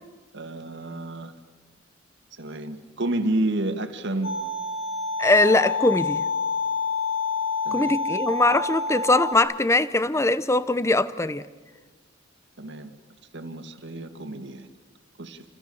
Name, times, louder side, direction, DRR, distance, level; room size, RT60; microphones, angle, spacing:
voice 1, 0.3-1.3 2.3-4.3 7.6-7.9 12.6-12.9 13.3-14.7 15.2-15.4, right 1 dB, 60° right, 2.1 m, -30 dB
sound 1, 4.2-9.4, left 4 dB, 65° left, 7.7 m, -27 dB
voice 2, 5.2-6.2 7.7-11.5, left 2 dB, 15° left, 0.8 m, -21 dB
29.0 x 25.5 x 7.1 m
head